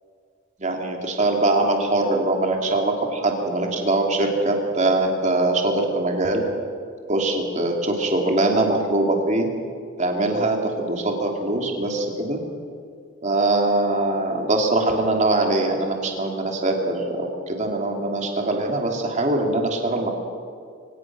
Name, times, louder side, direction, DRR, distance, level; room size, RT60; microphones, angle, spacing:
voice 1, 0.6-6.4 7.1-9.5 10.0-12.4 13.2-20.1, right 2 dB, 35° right, 2 dB, 2.9 m, -22 dB
24.5 x 18.5 x 6.2 m, 2.3 s
head